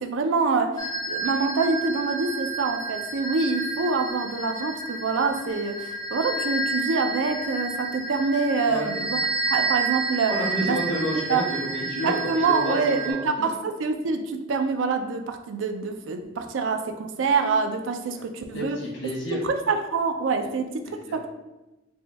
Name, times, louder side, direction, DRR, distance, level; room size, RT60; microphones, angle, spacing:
voice 1, 0.0-9.2 9.5-10.3 10.6-10.8 11.3-11.4 11.9-18.8 19.4-20.7 21.1-21.3, right 4 dB, 80° right, 6 dB, 0.4 m, -26 dB
sound 1, 0.8-13.1, right 3 dB, 20° left, 0.5 m, -30 dB
voice 2, 10.3-13.5 18.1-18.2 18.5-19.4 20.9-21.2, equal, 85° left, -3 dB, 1.3 m, -30 dB
4.3 x 2.2 x 3.3 m, 1.0 s
head